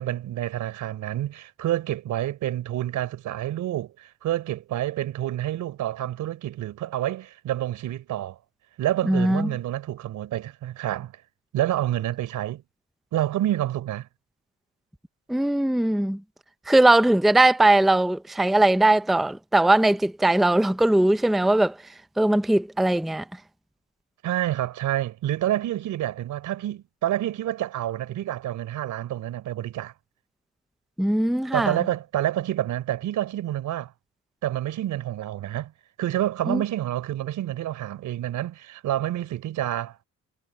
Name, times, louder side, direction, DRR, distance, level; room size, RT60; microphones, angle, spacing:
voice 1, 0.0-8.4 8.8-11.1 11.5-12.6 13.1-14.1 24.2-29.9 31.5-33.9 34.4-35.7 36.0-40.0, right 13 dB, 80° right, 3.8 m, -28 dB
voice 2, 9.1-9.5 15.3-16.2 16.7-21.8 22.2-23.2 31.0-31.8 36.5-36.6, right 1 dB, ahead, 0.6 m, -20 dB
cardioid pair, 90°, 30 cm